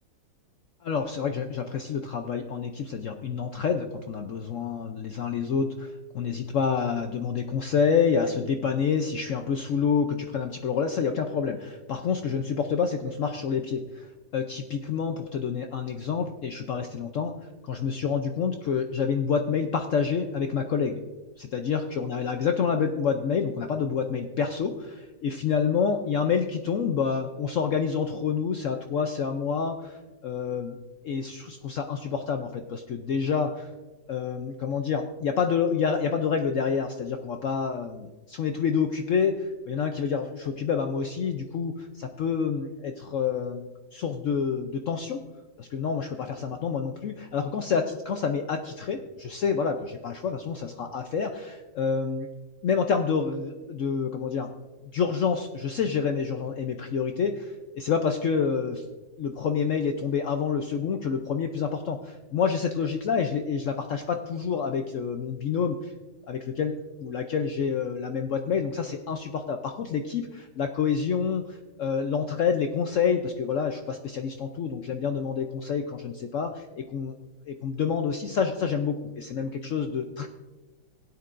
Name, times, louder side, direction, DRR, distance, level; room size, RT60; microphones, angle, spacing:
voice 1, 0.8-17.3 17.6-21.0 21.4-30.8 31.0-33.7 34.1-45.2 45.6-52.3 52.6-54.5 54.9-58.8 59.2-65.9 66.3-77.1 77.5-80.3, left 6 dB, 85° left, 5 dB, 0.6 m, -28 dB
17.0 x 9.7 x 2.5 m, 1.2 s
omnidirectional pair, 2.0 m